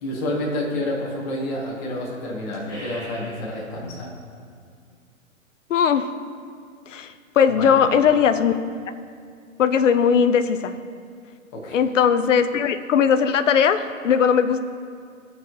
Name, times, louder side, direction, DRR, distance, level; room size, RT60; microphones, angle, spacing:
voice 1, 0.0-4.1 7.6-8.0 11.5-11.8, left 1 dB, 30° left, -3 dB, 1.3 m, -29 dB
sound 1, 2.5-4.1, left 2 dB, 10° left, 0.6 m, -38 dB
voice 2, 5.7-6.1 6.9-8.6 9.6-10.7 11.7-14.6, left 7 dB, 65° left, 12 dB, 0.6 m, -19 dB
14.0 x 4.7 x 3.2 m, 2.2 s
hypercardioid pair, 140°, 41 cm